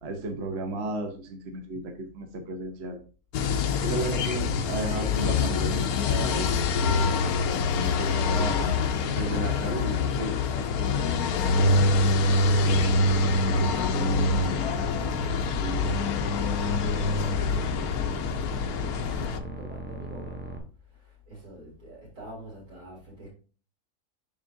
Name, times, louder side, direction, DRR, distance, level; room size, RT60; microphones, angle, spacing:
voice 1, 0.0-3.0 3.8-7.1 7.7-8.8 9.1-11.1 15.6-16.0, right 2 dB, 50° right, 1.1 m, -34 dB
sound 1, 3.3-19.4, left 3 dB, 75° left, 1.1 m, -25 dB
voice 2, 3.7-4.2 12.9-13.2 13.5-18.1 18.5-23.3, right 1 dB, 85° right, 3.5 m, -45 dB
sound 2, 12.7-20.6, right 1 dB, 15° right, 0.3 m, -38 dB
10.5 x 3.6 x 2.7 m
omnidirectional pair, 1.6 m